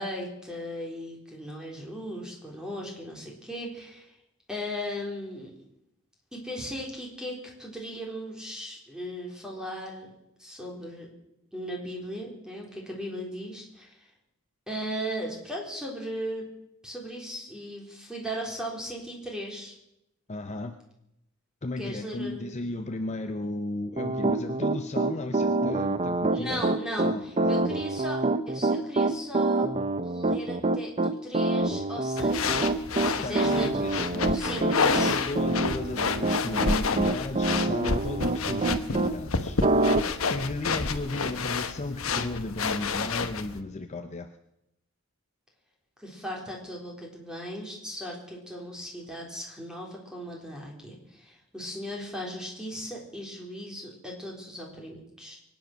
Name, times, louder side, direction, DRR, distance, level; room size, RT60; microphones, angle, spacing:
voice 1, 0.0-4.2 4.5-5.6 6.3-10.1 10.4-11.1 11.5-14.1 14.7-16.5 16.8-19.7 21.8-22.5 26.3-29.7 30.0-32.7 33.0-35.1 46.0-55.4, equal, 5° right, -1 dB, 3.8 m, -37 dB
voice 2, 20.3-20.8 21.6-26.6 27.0-27.6 33.2-44.3, left 2 dB, 35° left, 7 dB, 0.7 m, -35 dB
Piano, 24.0-39.1 39.6-40.0, right 2 dB, 30° right, 0.6 m, -26 dB
sound 1, 32.2-43.6, left 4 dB, 80° left, 1.1 m, -30 dB
24.0 x 9.4 x 6.0 m, 0.84 s
head